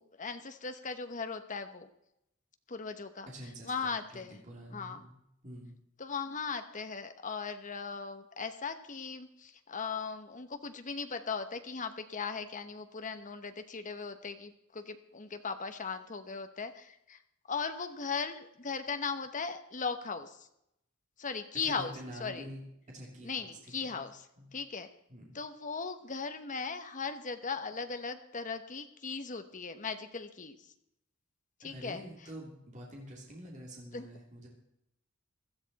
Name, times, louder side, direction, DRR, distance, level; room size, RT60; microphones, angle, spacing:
voice 1, 0.0-1.9 2.7-4.4 4.7-5.0 6.0-17.2 17.5-20.5 21.2-22.5 23.2-24.3 24.5-24.9 25.3-30.6 31.6-32.3 33.9-34.1, left 5 dB, 35° left, 9 dB, 1.0 m, -38 dB
voice 2, 3.3-5.1 5.4-5.7 21.6-24.0 24.4-24.5 25.1-25.3 31.6-34.5, equal, 35° right, -2 dB, 2.9 m, -47 dB
16.0 x 12.5 x 4.1 m, 0.80 s
head